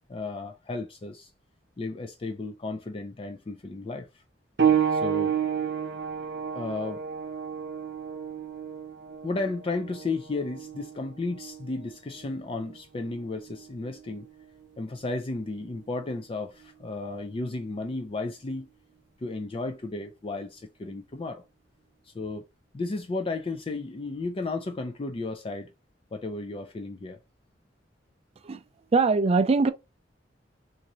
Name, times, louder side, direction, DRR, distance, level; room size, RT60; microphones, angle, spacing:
voice 1, 0.1-1.3 1.8-4.1 4.9-5.4 6.5-7.0 9.2-14.3 14.8-18.7 19.2-21.4 22.1-22.4 22.7-25.7 26.1-27.2, left 3 dB, 30° left, 0.4 m, -33 dB
sound 1, 4.6-14.8 15.8-15.9 16.6-16.7, right 8 dB, 70° right, 0.8 m, -31 dB
voice 2, 28.9-29.7, right 4 dB, 35° right, 0.4 m, -21 dB
3.7 x 2.7 x 2.9 m
head